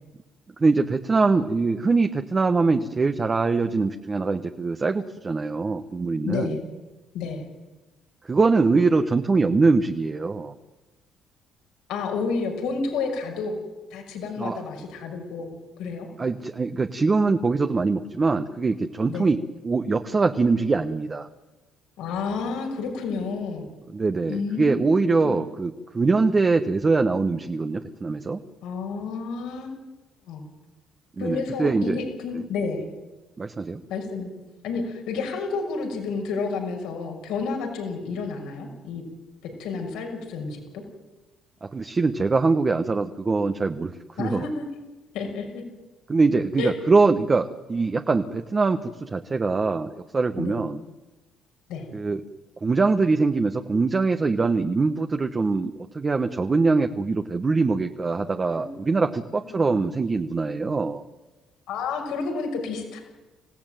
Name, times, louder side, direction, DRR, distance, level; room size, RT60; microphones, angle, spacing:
voice 1, 0.6-6.6 8.2-10.5 14.4-14.6 16.2-19.4 19.6-21.3 23.9-28.4 31.2-32.0 33.4-33.8 41.6-43.9 44.2-44.4 46.1-50.8 51.9-52.2 52.6-61.0, right 3 dB, 30° right, 6 dB, 1.2 m, -23 dB
voice 2, 6.2-6.7 7.1-7.4 11.9-13.6 13.9-15.5 15.8-16.1 19.1-19.3 22.0-23.6 24.3-25.4 28.6-29.9 30.3-30.5 31.2-32.8 33.9-34.3 34.6-39.0 39.6-40.8 44.2-44.7 45.1-45.6 46.6-46.7 50.4-50.6 51.7-51.9 58.4-58.7 59.4-59.8 61.7-63.0, left 4 dB, 85° left, 3 dB, 6.1 m, -30 dB
26.5 x 16.5 x 9.2 m, 1.1 s
cardioid pair, 95°, 0 cm